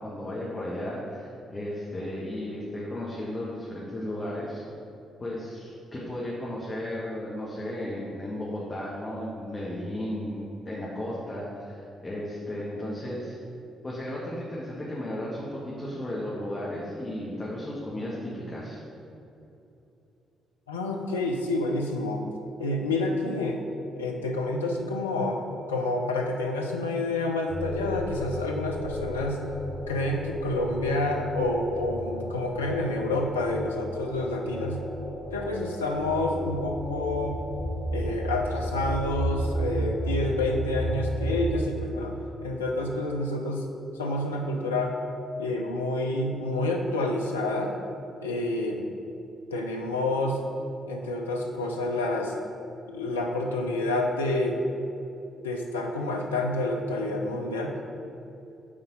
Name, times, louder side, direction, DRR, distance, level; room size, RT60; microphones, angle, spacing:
voice 1, 0.0-4.6 5.2-13.4 13.8-18.8, left 1 dB, 30° left, -6 dB, 1.6 m, -34 dB
voice 2, 20.7-22.3 22.6-23.6 24.0-25.4 25.7-29.4 29.9-34.8 35.3-37.4 37.9-42.1 42.4-43.7 43.9-45.0 45.4-47.8 48.2-48.9 49.5-50.4 50.8-52.3 52.9-54.6 55.4-57.7, left 2 dB, 85° left, 1 dB, 0.5 m, -28 dB
sound 1, 27.5-41.5, equal, 65° left, 1.6 m, -33 dB
8.6 x 4.0 x 5.4 m, 2.8 s
figure-of-eight pair, 40°, 0 cm